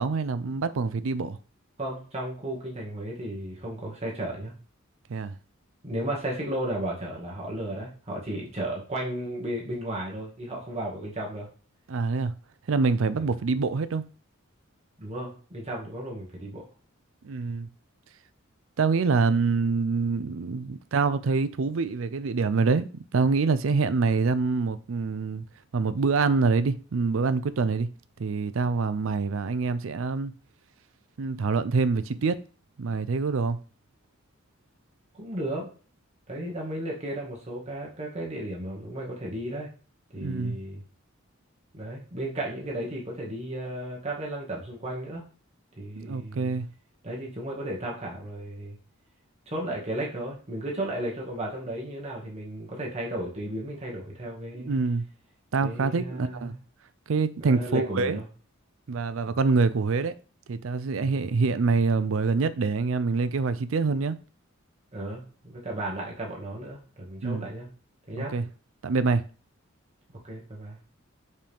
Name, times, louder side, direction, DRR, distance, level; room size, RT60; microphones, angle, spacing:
voice 1, 0.0-1.4 5.1-5.4 11.9-12.3 12.7-14.0 17.2-17.7 18.8-25.4 25.7-27.9 28.2-30.3 31.2-32.4 32.8-33.6 40.2-40.6 46.0-46.7 54.5-55.1 55.5-56.5 57.1-58.2 58.9-60.2 60.5-64.2 67.2-67.5 68.2-68.5 68.8-69.2, right 4 dB, 65° right, 0.5 m, -25 dB
voice 2, 1.8-4.5 5.8-11.5 13.2-13.3 15.0-16.6 35.1-35.7 36.3-39.7 40.1-40.8 41.7-45.2 45.8-46.6 47.0-48.8 49.5-54.7 55.6-56.6 57.4-58.3 64.9-67.7 68.1-68.3 70.2-70.8, right 1 dB, 30° right, 1.9 m, -34 dB
5.4 x 5.3 x 3.5 m
head